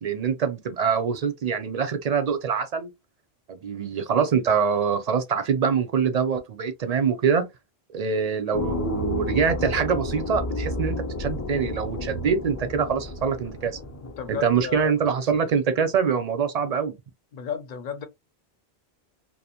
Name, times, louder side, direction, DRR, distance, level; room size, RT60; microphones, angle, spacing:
voice 1, 0.0-2.9 3.5-7.5 7.9-13.8 14.3-16.9, right 6 dB, 55° right, 0.5 m, -24 dB
sound 1, 8.5-14.9, left 1 dB, 30° left, 0.3 m, -32 dB
voice 2, 14.2-15.0 17.3-18.0, left 7 dB, 60° left, 0.6 m, -33 dB
2.6 x 2.0 x 2.8 m
omnidirectional pair, 1.0 m